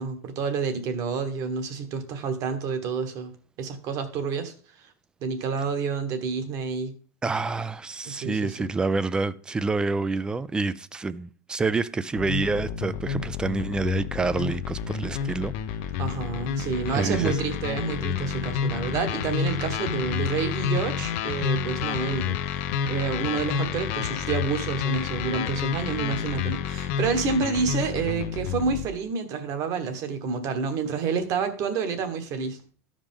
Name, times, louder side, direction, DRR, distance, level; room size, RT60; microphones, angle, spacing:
voice 1, 0.0-3.3 3.6-4.5 5.2-6.9 8.0-8.6 16.0-22.4 22.9-32.6, right 5 dB, 40° right, 1.3 m, -29 dB
voice 2, 7.2-15.5 16.9-17.4, right 3 dB, 10° right, 0.3 m, -27 dB
sound 1, 12.2-28.9, left 7 dB, 55° left, 0.6 m, -29 dB
13.5 x 5.1 x 3.7 m
supercardioid pair, 145°, 8 cm